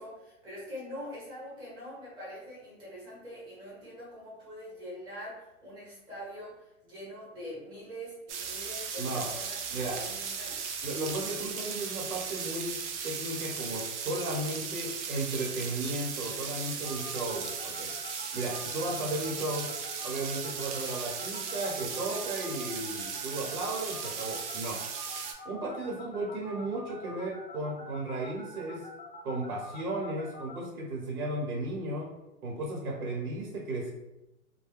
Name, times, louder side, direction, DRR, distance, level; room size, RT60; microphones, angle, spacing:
voice 1, 0.0-10.6, equal, 10° right, -7 dB, 0.9 m, -44 dB
sound 1, 8.3-25.3, right 6 dB, 55° right, 0.5 m, -37 dB
voice 2, 9.0-9.3 9.7-10.0 10.8-12.7 13.0-17.9 18.3-19.7 20.0-24.8 25.4-28.8 29.2-32.1 32.4-33.9, right 2 dB, 90° right, -2 dB, 1.2 m, -35 dB
sound 2, 16.8-30.6, left 2 dB, 35° left, 0.4 m, -46 dB
2.3 x 2.3 x 3.3 m, 0.92 s
hypercardioid pair, 150°, 43 cm